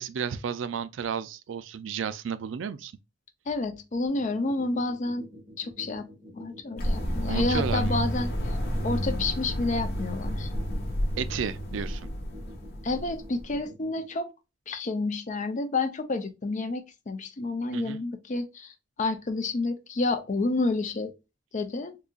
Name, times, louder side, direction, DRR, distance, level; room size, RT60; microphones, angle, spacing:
voice 1, 0.0-2.9 7.3-8.0 11.2-12.1 17.7-18.0, right 7 dB, 80° right, 0.4 m, -32 dB
voice 2, 3.5-5.2 5.6-8.3 8.8-10.5 12.8-14.3 14.7-21.1 21.5-22.0, left 3 dB, 40° left, 0.5 m, -29 dB
sound 1, 4.0-14.0, equal, 25° right, 1.4 m, -47 dB
sound 2, 6.8-13.5, equal, 60° left, 1.1 m, -30 dB
3.8 x 2.7 x 2.3 m
head